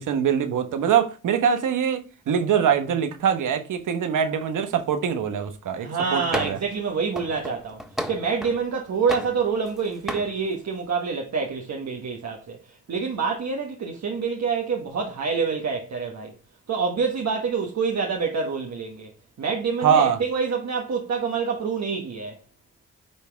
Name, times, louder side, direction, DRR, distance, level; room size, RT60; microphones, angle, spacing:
voice 1, 0.0-6.6 19.8-20.2, right 8 dB, 80° right, 1.1 m, -23 dB
voice 2, 5.8-16.3 16.7-19.1 19.4-22.4, right 5 dB, 60° right, 1.3 m, -27 dB
sound 1, 6.3-6.7 7.2-8.6 9.1-9.8 10.1-10.3, equal, ahead, 1.7 m, -33 dB
9.9 x 3.5 x 3.4 m
supercardioid pair, 50°, 31 cm